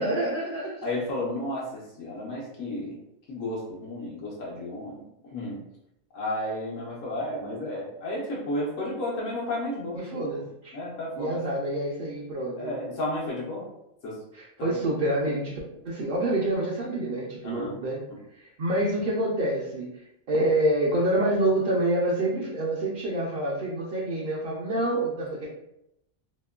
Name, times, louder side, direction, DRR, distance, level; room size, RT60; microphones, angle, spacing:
voice 1, 0.0-0.8 9.9-10.8 11.2-12.7 14.3-15.6 15.8-18.0 18.3-25.5, right 1 dB, 65° right, -5 dB, 0.5 m, -27 dB
voice 2, 0.8-3.0 3.3-5.6 6.1-10.3 10.7-11.4 12.6-13.7 14.0-14.2 14.6-14.8 17.4-17.8 18.1-18.2, left 1 dB, 85° left, -5 dB, 1.1 m, -32 dB
2.9 x 2.1 x 2.3 m, 0.81 s
omnidirectional pair, 1.3 m